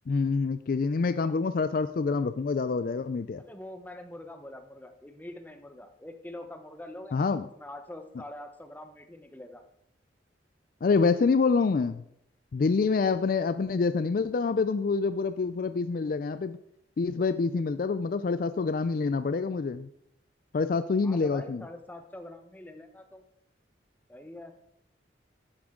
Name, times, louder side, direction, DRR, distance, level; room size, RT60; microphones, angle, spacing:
voice 1, 0.1-3.4 7.1-7.4 10.8-12.0 12.5-16.6 17.0-19.9 20.5-21.6, left 4 dB, 50° left, 12 dB, 0.3 m, -26 dB
voice 2, 3.4-9.6 21.0-23.2 24.1-24.6, left 1 dB, 10° left, 6 dB, 0.9 m, -44 dB
11.0 x 9.5 x 3.7 m, 0.74 s
head